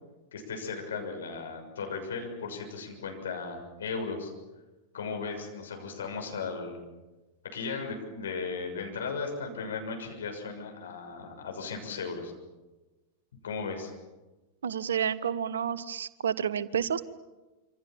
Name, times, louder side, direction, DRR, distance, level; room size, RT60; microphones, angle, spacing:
voice 1, 0.3-4.3 4.9-6.8 7.5-12.3 13.4-13.9, left 4 dB, 65° left, 3 dB, 6.5 m, -36 dB
voice 2, 14.6-17.0, right 8 dB, 65° right, 17 dB, 1.1 m, -30 dB
27.0 x 26.0 x 7.4 m, 1.2 s
figure-of-eight pair, 90°, 0 cm